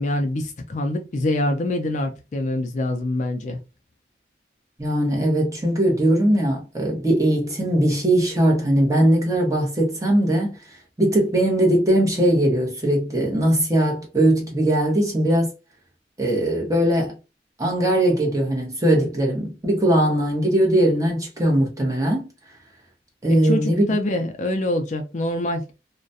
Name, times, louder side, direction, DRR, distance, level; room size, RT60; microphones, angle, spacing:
voice 1, 0.0-3.6 23.3-25.7, left 1 dB, 45° left, 0.4 m, -25 dB
voice 2, 4.8-15.5 16.2-17.2 17.6-22.3 23.2-24.0, right 1 dB, 20° right, 0.8 m, -20 dB
2.3 x 2.1 x 2.6 m
head